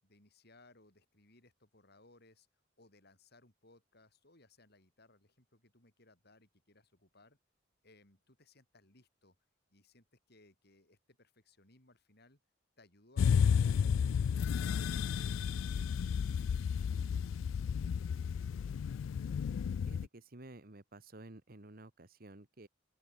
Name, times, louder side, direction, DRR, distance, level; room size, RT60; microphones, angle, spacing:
voice 1, 0.0-2.5 2.8-7.4 7.8-9.4 9.7-12.4 12.8-14.3 14.6-18.0, left 2 dB, 55° left, 6.4 m, -65 dB
sound 1, 13.2-20.1, left 7 dB, 90° left, 0.3 m, -32 dB
voice 2, 19.8-22.7, right 2 dB, 50° right, 1.6 m, -53 dB
open air
head